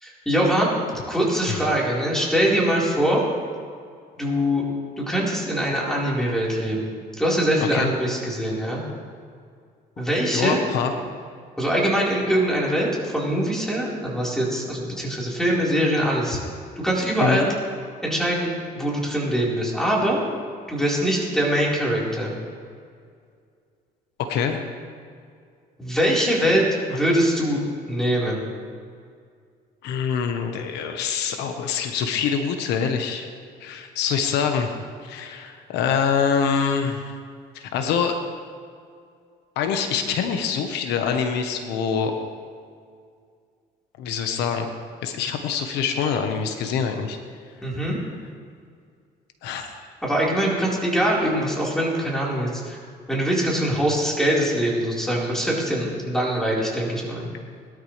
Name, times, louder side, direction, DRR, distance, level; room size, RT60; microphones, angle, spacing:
voice 1, 0.0-0.8 1.1-3.2 4.2-4.6 5.0-6.9 7.2-8.8 10.0-10.6 11.6-16.4 16.8-17.5 18.0-20.2 20.7-22.3 25.8-27.6 27.9-28.5 47.6-48.0 50.0-52.8 53.1-57.3, equal, 5° left, -5 dB, 4.5 m, -23 dB
voice 2, 10.3-10.9 17.2-17.4 24.2-24.6 29.8-33.3 33.6-34.7 35.0-37.1 37.5-38.2 39.6-42.1 44.0-44.7 45.0-47.2 49.4-49.7, left 6 dB, 85° left, 5 dB, 1.3 m, -25 dB
21.0 x 13.0 x 3.4 m, 2.2 s
cardioid pair, 110°, 17 cm